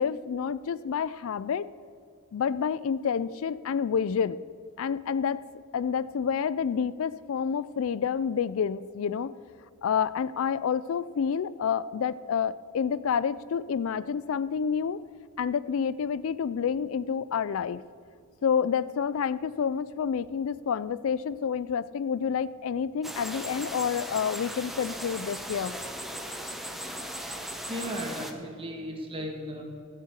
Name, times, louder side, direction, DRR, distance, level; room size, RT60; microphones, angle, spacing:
voice 1, 0.0-1.7 2.3-4.4 4.8-5.4 5.7-9.3 9.8-15.0 15.4-17.8 18.4-25.7, left 7 dB, 70° left, 18 dB, 0.4 m, -29 dB
sound 1, 23.0-28.3, equal, ahead, 1.0 m, -37 dB
voice 2, 27.4-29.6, equal, 25° right, 1 dB, 2.1 m, -36 dB
14.5 x 7.6 x 8.0 m, 2.3 s
head